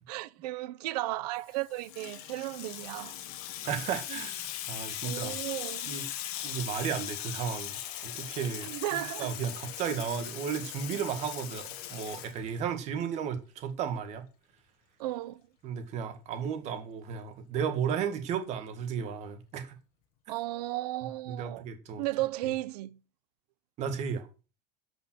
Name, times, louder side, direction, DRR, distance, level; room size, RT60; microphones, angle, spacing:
voice 1, 0.1-3.2 4.1-4.2 5.0-5.9 8.6-9.3 15.0-15.4 20.3-21.6 22.0-23.0, right 17 dB, 90° right, 0.9 m, -34 dB
Water tap faucet / Sink (filling or washing), 1.5-12.9, left 12 dB, 70° left, 1.8 m, -39 dB
voice 2, 3.6-5.4 5.9-6.0 6.4-8.8 9.2-14.2 15.6-19.8 21.3-22.0 23.8-24.3, right 7 dB, 35° right, 1.8 m, -34 dB
10.0 x 5.5 x 6.2 m
cardioid pair, 175°, 20 cm